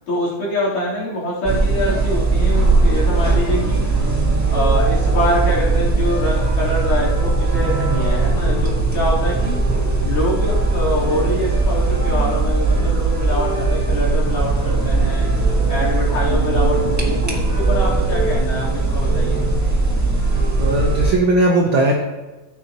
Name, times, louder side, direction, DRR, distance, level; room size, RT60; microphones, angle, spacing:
voice 1, 0.1-3.9 4.5-9.6 10.1-15.3 15.7-19.5, equal, 75° left, -8 dB, 5.2 m, -24 dB
sound 1, 1.4-21.1, right 3 dB, 15° right, 0.5 m, -19 dB
voice 2, 20.6-21.9, right 2 dB, 75° right, 0 dB, 1.1 m, -17 dB
14.5 x 8.5 x 3.0 m, 1.1 s
omnidirectional pair, 3.7 m